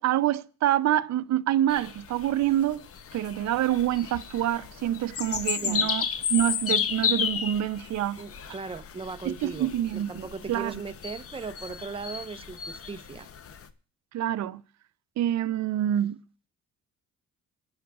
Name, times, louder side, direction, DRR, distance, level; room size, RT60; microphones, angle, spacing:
voice 1, 0.0-2.8 3.1-6.0 6.3-8.2 9.3-10.8 14.1-14.6 15.2-16.2, right 12 dB, 65° right, 0.6 m, -26 dB
sound 1, 1.7-13.6, left 7 dB, 50° left, 0.8 m, -33 dB
voice 2, 5.6-5.9 8.2-13.3, right 4 dB, 20° right, 0.7 m, -38 dB
18.0 x 9.6 x 2.4 m
cardioid pair, 90°, 30 cm